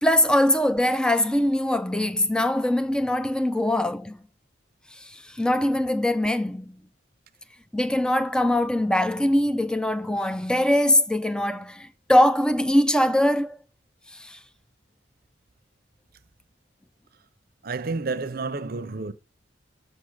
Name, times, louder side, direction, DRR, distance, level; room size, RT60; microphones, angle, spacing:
voice 1, 0.0-4.2 5.0-6.8 7.7-13.6 14.1-14.4, left 1 dB, 5° left, 0.5 m, -22 dB
voice 2, 17.6-19.1, right 3 dB, 50° right, 0.7 m, -30 dB
6.7 x 5.3 x 6.5 m
head